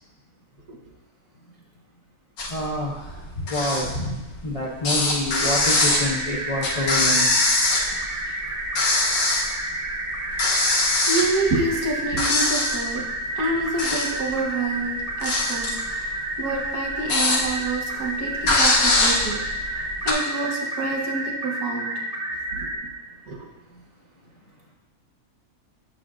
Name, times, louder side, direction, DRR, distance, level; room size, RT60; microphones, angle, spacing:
sound 1, 2.4-2.7 3.0-4.5 4.8-8.2 8.5-9.5 9.9-10.0 10.3-11.9 12.2-12.9 13.5-14.3 14.7-17.7 18.1-18.2 18.4-20.1, left 2 dB, 80° left, 1.4 m, -22 dB
voice 1, 2.5-2.9 3.5-4.2 4.4-7.3, left 1 dB, 45° left, -4 dB, 0.4 m, -27 dB
sound 2, 5.5-22.8, right 1 dB, 40° right, 1.7 m, -30 dB
voice 2, 11.1-13.0 13.3-19.4 19.7-21.9 22.5-22.7 23.3-23.4, right 2 dB, 80° right, -1 dB, 1.5 m, -28 dB
7.7 x 6.4 x 2.4 m, 1.1 s
omnidirectional pair, 1.5 m